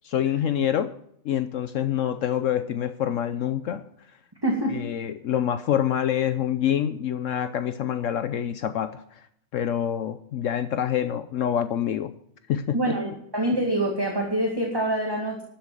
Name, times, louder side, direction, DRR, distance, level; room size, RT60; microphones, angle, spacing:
voice 1, 0.0-0.9 1.2-3.8 4.7-9.0 9.5-12.1 12.5-13.0, left 10 dB, 70° left, 11 dB, 1.0 m, -26 dB
voice 2, 4.4-4.8 12.7-15.4, right 1 dB, 15° right, 0 dB, 2.0 m, -25 dB
12.5 x 7.2 x 7.6 m, 0.72 s
omnidirectional pair, 1.5 m